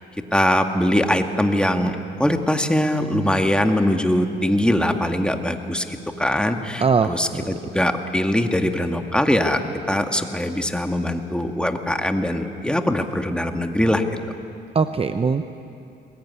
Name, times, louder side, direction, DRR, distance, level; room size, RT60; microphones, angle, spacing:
voice 1, 0.3-9.6 9.9-14.0, left 1 dB, 5° left, 5 dB, 1.9 m, -22 dB
voice 2, 6.8-7.4 14.7-15.5, right 5 dB, 30° right, 9 dB, 0.8 m, -21 dB
22.0 x 21.0 x 9.7 m, 2.6 s
cardioid pair, 90°, 20 cm